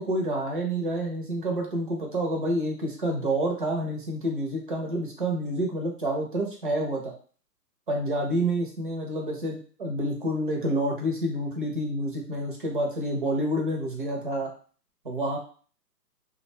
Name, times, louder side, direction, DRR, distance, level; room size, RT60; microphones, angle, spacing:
voice 1, 0.0-7.1 7.9-14.5 15.0-15.4, right 1 dB, 35° right, 0 dB, 0.5 m, -28 dB
2.3 x 2.1 x 3.0 m, 0.42 s
hypercardioid pair, 145°, 48 cm